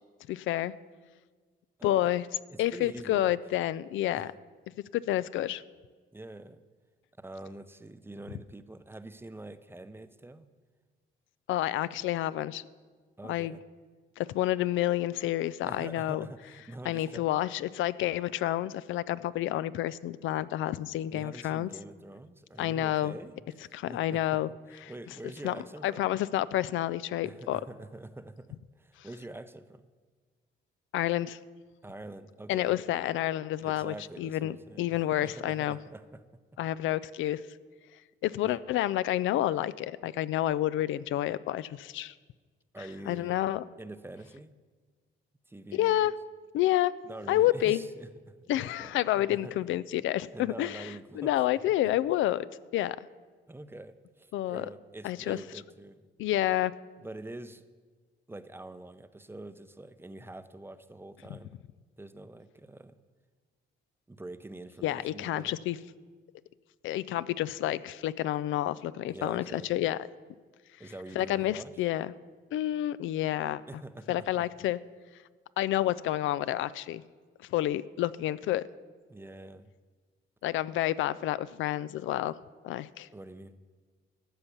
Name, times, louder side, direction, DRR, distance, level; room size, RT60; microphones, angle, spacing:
voice 1, 0.3-0.7 1.8-2.2 2.6-4.3 4.9-5.6 11.5-12.6 13.3-13.6 14.2-16.3 16.9-21.7 22.6-23.2 23.7-24.5 25.4-25.6 25.8-27.6 30.9-31.4 32.5-35.8 36.6-37.4 38.2-42.1 43.1-43.6 45.7-46.1 46.5-46.9 47.3-47.8 48.5-52.5 52.7-53.0 54.3-54.7 55.0-55.4 56.2-56.7 64.8-65.8 66.8-70.0 71.2-72.1 72.5-73.6 74.1-74.8 75.6-77.0 77.5-78.6 80.4-82.4 82.6-83.1, left 14 dB, 80° left, 17 dB, 0.4 m, -29 dB
voice 2, 2.5-3.4 4.1-4.3 6.1-6.6 7.2-10.5 13.2-13.6 15.6-17.3 21.1-24.4 24.7-26.1 27.2-29.9 31.8-32.8 33.6-36.2 38.4-38.6 42.7-43.4 43.8-44.5 45.5-46.1 47.0-49.5 50.3-51.3 51.8-51.9 53.5-56.1 57.0-57.6 58.3-61.5 62.0-63.0 64.1-65.6 69.0-69.9 70.8-71.7 73.7-74.5 79.1-79.7 83.1-83.5, right 2 dB, 10° right, 12 dB, 0.6 m, -45 dB
13.5 x 5.7 x 8.4 m, 1.5 s
cardioid pair, 90°, 20 cm